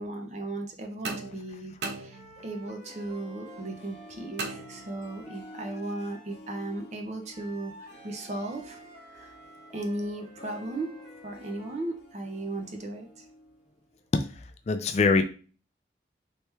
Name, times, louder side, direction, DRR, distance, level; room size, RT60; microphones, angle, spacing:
voice 1, 0.0-8.8 9.1-9.3 9.7-10.9 11.2-13.2, right 2 dB, 40° right, 4 dB, 0.7 m, -36 dB
sound 1, 1.0-2.7 4.4-5.3, right 3 dB, 80° right, 0.7 m, -38 dB
sound 2, 2.1-6.4 7.3-11.9, equal, 5° left, 1.7 m, -52 dB
Harp, 2.6-13.7 13.9-14.0, equal, 70° left, 0.8 m, -50 dB
voice 2, 14.1-15.2, left 4 dB, 40° left, 8 dB, 0.3 m, -24 dB
3.3 x 3.1 x 3.3 m, 0.38 s
head